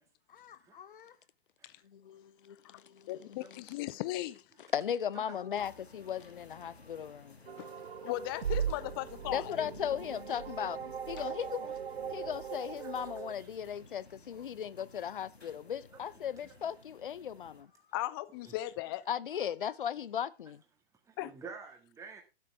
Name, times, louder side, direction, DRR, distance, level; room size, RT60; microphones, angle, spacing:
voice 1, 0.3-1.2 1.8-3.4 4.7-7.4 9.3-10.8 11.1-11.7 12.1-17.7 19.1-20.6, left 8 dB, 55° left, 0.8 m, -37 dB
voice 2, 3.1-4.4 7.6-7.7 8.0-9.7 17.9-19.1 21.2-21.3, left 16 dB, 20° left, 0.6 m, -37 dB
sound 1, 5.6-17.6, left 3 dB, 80° left, 2.4 m, -55 dB
sound 2, 7.5-13.3, right 8 dB, 65° right, 0.7 m, -39 dB
voice 3, 21.0-22.2, right 5 dB, 10° right, 1.9 m, -49 dB
13.0 x 9.3 x 3.5 m
figure-of-eight pair, 120°, 31 cm